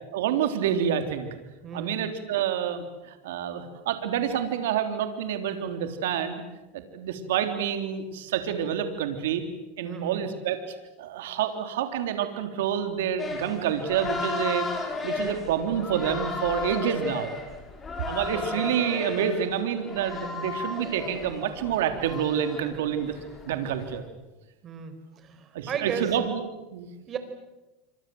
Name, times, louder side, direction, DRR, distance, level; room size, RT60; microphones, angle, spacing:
voice 1, 0.1-1.3 1.7-2.8 3.2-6.4 6.7-9.4 9.8-10.6 11.0-14.7 15.0-17.3 18.0-23.1 23.5-24.0 25.5-26.9, right 9 dB, 85° right, 7 dB, 3.5 m, -28 dB
voice 2, 1.6-2.0 9.8-10.2 18.3-18.7 24.6-26.1 27.1-27.2, right 7 dB, 30° right, 9 dB, 4.8 m, -35 dB
sound 1, 13.2-24.0, left 4 dB, 20° left, 6.0 m, -35 dB
28.5 x 25.0 x 7.9 m, 1.0 s
supercardioid pair, 135°, 0 cm